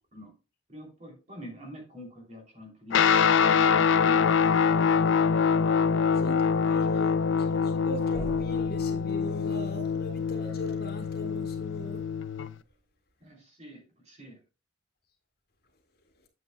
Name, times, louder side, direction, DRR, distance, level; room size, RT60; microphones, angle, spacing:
voice 1, 0.7-4.7 6.9-7.0 7.4-7.5 13.2-14.4, left 1 dB, 35° right, 2.9 m, -45 dB
Guitar, 2.9-12.5, left 6 dB, 70° left, 0.4 m, -24 dB
voice 2, 6.1-12.0, equal, 50° left, 1.9 m, -40 dB
sound 1, 8.1-12.8, right 1 dB, 15° right, 4.3 m, -48 dB
9.0 x 7.8 x 2.2 m
head